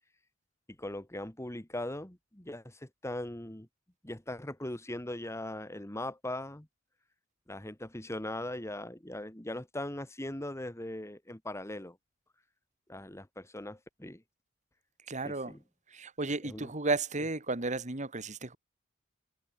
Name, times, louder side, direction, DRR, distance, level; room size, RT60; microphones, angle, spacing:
voice 1, 0.8-3.7 4.0-6.7 7.5-12.0 12.9-14.2 15.2-15.6 16.4-16.7, left 1 dB, 15° left, 2.0 m, -40 dB
voice 2, 15.1-15.6 15.9-18.6, right 3 dB, 35° right, 2.1 m, -33 dB
head